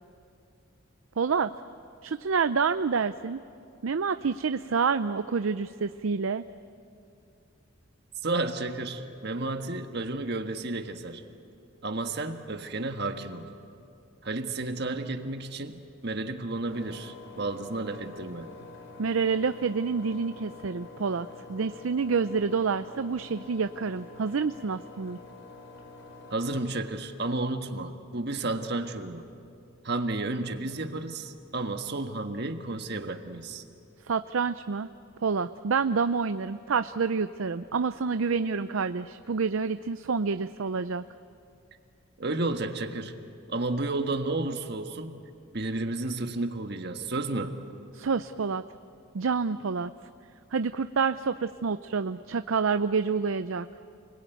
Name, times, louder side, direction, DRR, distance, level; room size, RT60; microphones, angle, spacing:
voice 1, 1.2-1.5 2.0-3.4 3.8-6.4 19.0-25.2 34.0-34.9 35.2-41.0 47.9-48.6 49.1-49.9 50.5-53.7, right 5 dB, 80° right, 11 dB, 0.5 m, -28 dB
voice 2, 8.2-11.2 11.8-13.5 14.2-18.5 26.3-29.2 29.8-33.6 42.2-43.1 43.5-45.2 45.5-47.7, right 2 dB, 55° right, 6 dB, 1.6 m, -32 dB
Engine, 16.6-26.6, left 3 dB, 65° left, 4.3 m, -47 dB
29.0 x 21.0 x 9.3 m, 2.5 s
head